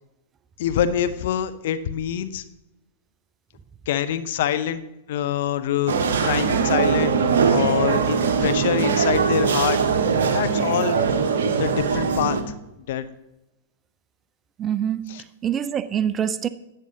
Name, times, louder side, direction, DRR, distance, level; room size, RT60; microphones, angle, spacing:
voice 1, 0.6-2.4 3.9-4.8 5.1-9.8 10.3-11.0 11.6-12.4 12.9-13.0, left 10 dB, 60° left, 0.6 m, -25 dB
sound 1, 5.9-12.4, right 5 dB, 65° right, 1.0 m, -21 dB
voice 2, 14.6-16.5, right 9 dB, 25° right, 0.5 m, -25 dB
11.0 x 9.0 x 2.8 m
figure-of-eight pair, 100°, 0 cm